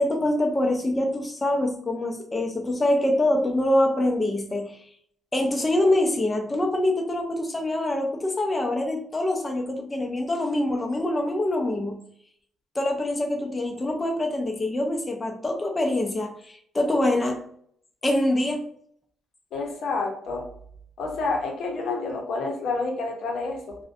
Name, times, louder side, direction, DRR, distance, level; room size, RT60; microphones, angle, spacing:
voice 1, 0.0-4.8 5.3-12.1 12.8-17.5 18.0-18.6, left 1 dB, 20° left, 2 dB, 0.4 m, -25 dB
voice 2, 19.5-20.5 21.0-23.8, left 3 dB, 70° left, 1 dB, 0.6 m, -29 dB
2.4 x 2.0 x 2.5 m, 0.63 s
cardioid pair, 90°, 0 cm